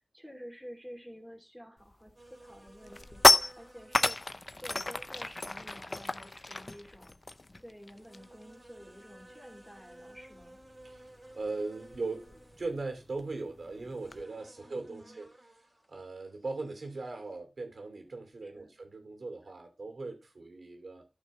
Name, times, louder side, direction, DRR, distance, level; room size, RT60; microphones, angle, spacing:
voice 1, 0.1-2.1 2.4-4.2 4.6-7.2 7.6-10.6 14.5-15.2 18.4-18.7, equal, 5° left, 2.8 m, -50 dB
sound 1, 1.9-2.1 2.5-8.4 8.7-8.9 9.2-14.2, left 2 dB, 35° left, 0.6 m, -31 dB
sound 2, 2.2-17.4, right 1 dB, 30° right, 2.9 m, -56 dB
voice 2, 10.8-15.3 15.9-21.0, right 3 dB, 75° right, 2.7 m, -39 dB
13.5 x 5.9 x 3.2 m
wide cardioid pair, 80°, 0 cm